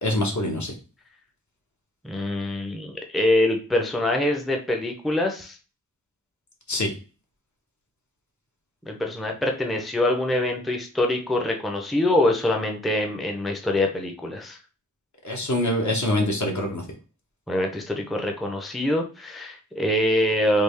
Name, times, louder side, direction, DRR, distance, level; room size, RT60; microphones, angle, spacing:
voice 1, 0.0-0.7 6.7-6.9 15.2-16.8, left 1 dB, 60° left, 1 dB, 1.0 m, -24 dB
voice 2, 2.0-5.6 8.9-14.6 17.5-20.6, left 1 dB, ahead, 2 dB, 0.5 m, -24 dB
3.5 x 2.3 x 3.2 m, 0.35 s
wide cardioid pair, 80°, 33 cm